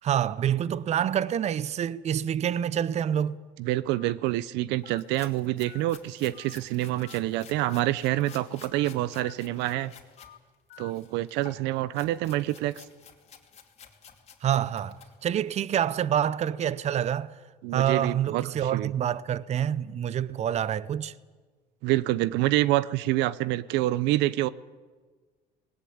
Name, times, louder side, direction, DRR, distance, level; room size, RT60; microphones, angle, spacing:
voice 1, 0.0-3.4 14.4-15.0 15.2-17.3 17.7-21.1, right 10 dB, 40° right, 0.7 m, -27 dB
voice 2, 3.6-9.9 10.8-12.8 17.6-18.9 21.8-24.5, right 16 dB, 80° right, 0.6 m, -27 dB
Telephone, 4.0-4.1 4.8-5.0 5.7-5.8 6.3-6.5 7.0-7.2 7.6-7.8 8.2-8.4 8.7-8.9 9.2-9.3 9.7-9.9 10.2-10.4 10.7-10.9, left 14 dB, 55° left, 0.9 m, -49 dB
sound 1, 4.8-10.3 10.7-15.7, left 7 dB, 35° left, 2.8 m, -52 dB
19.5 x 18.0 x 8.7 m
cardioid pair, 120°, 18 cm